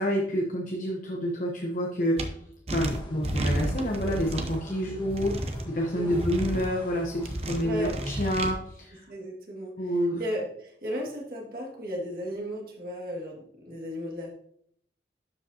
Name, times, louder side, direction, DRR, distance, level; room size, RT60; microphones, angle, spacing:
voice 1, 0.0-2.2 2.7-9.0 9.8-10.2, equal, 45° left, 1 dB, 0.8 m, -28 dB
sound 1, 2.2-2.3 2.7-4.6 5.1-5.6 6.1-6.7 7.2-8.5, right 1 dB, 35° right, 0.7 m, -31 dB
sound 2, 2.8-8.3, left 1 dB, 30° left, 1.4 m, -44 dB
voice 2, 7.6-8.3 9.1-14.3, equal, 55° right, -2 dB, 2.0 m, -35 dB
11.5 x 5.1 x 2.7 m, 0.69 s
head